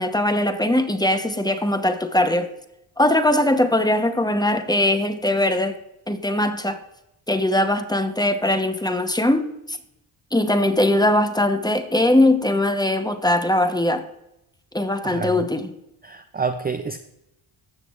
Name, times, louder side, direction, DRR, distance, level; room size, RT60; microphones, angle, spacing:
voice 1, 0.0-2.5 3.0-5.8 6.1-6.8 7.3-9.8 10.3-14.0 14.7-15.7, left 1 dB, 10° left, 0.9 m, -20 dB
voice 2, 15.0-15.5 16.0-17.0, right 5 dB, 20° right, 0.5 m, -28 dB
15.0 x 6.1 x 2.4 m
cardioid pair, 70°, 49 cm